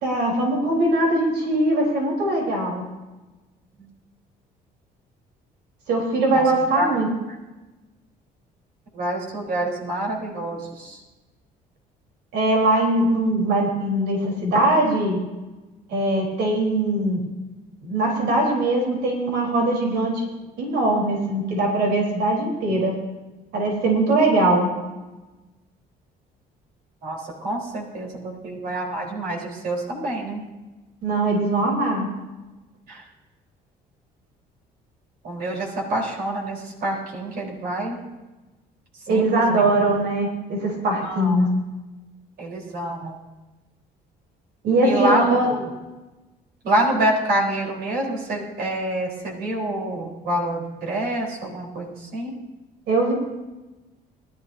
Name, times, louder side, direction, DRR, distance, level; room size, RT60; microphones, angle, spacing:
voice 1, 0.0-2.8 5.9-7.1 12.3-15.2 15.9-17.2 17.8-20.2 20.6-23.0 23.5-24.7 31.0-32.1 39.1-41.5 44.6-45.5 52.9-53.1, right 2 dB, 80° right, -1 dB, 3.9 m, -21 dB
voice 2, 8.9-11.0 27.0-30.4 31.6-31.7 32.9-33.0 35.2-38.0 39.1-39.7 41.0-41.4 42.4-43.2 44.8-45.7 46.6-52.3, right 1 dB, 65° right, -1 dB, 3.9 m, -27 dB
20.0 x 12.0 x 2.7 m, 1.1 s
cardioid pair, 110°, 17 cm